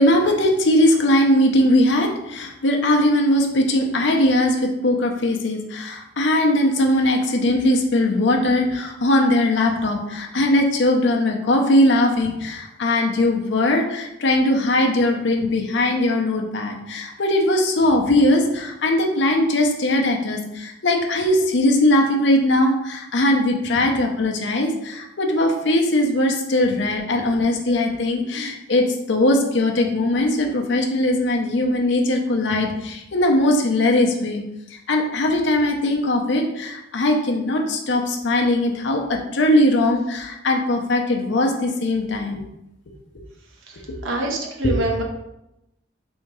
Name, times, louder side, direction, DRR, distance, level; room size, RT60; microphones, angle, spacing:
voice 1, 0.0-34.4 34.7-42.5 44.7-44.8, left 1 dB, 65° left, 1 dB, 0.6 m, -20 dB
voice 2, 43.7-45.0, right 2 dB, 85° right, 0 dB, 0.7 m, -26 dB
3.5 x 2.7 x 4.6 m, 0.86 s
head